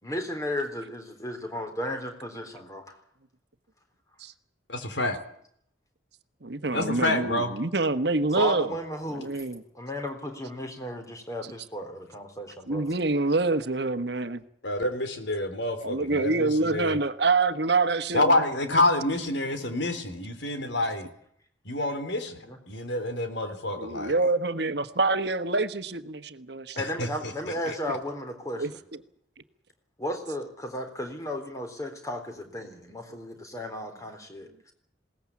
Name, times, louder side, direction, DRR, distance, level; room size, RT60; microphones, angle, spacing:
voice 1, 0.0-3.0 8.4-9.4 9.7-12.9 22.4-22.6 26.7-28.8 30.0-34.5, equal, 15° left, 5 dB, 3.7 m, -34 dB
voice 2, 4.7-5.2 6.7-7.5 14.6-17.0 18.1-21.1 21.7-22.4 22.7-24.2 27.0-27.3 27.7-27.8, left 1 dB, 70° left, 8 dB, 3.7 m, -27 dB
voice 3, 6.4-8.7 9.1-9.6 12.7-14.4 15.8-18.2 23.8-26.8 28.6-28.7, right 3 dB, 60° right, 10 dB, 1.3 m, -26 dB
21.0 x 18.5 x 8.5 m, 0.67 s
head